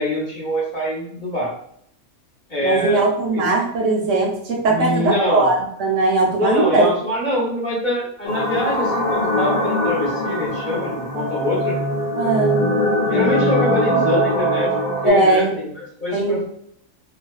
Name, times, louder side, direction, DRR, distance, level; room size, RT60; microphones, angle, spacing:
voice 1, 0.0-1.5 2.5-3.0 3.3-3.4 4.7-5.5 6.4-11.8 13.0-14.7 15.0-16.4, left 1 dB, 40° left, -7 dB, 0.8 m, -24 dB
voice 2, 2.6-6.9 12.2-12.7 15.0-15.5 16.1-16.4, right 3 dB, 70° right, -1 dB, 0.9 m, -19 dB
sound 1, 8.2-15.1, left 1 dB, 85° left, 1.1 m, -21 dB
2.3 x 2.3 x 2.3 m, 0.69 s
omnidirectional pair, 1.5 m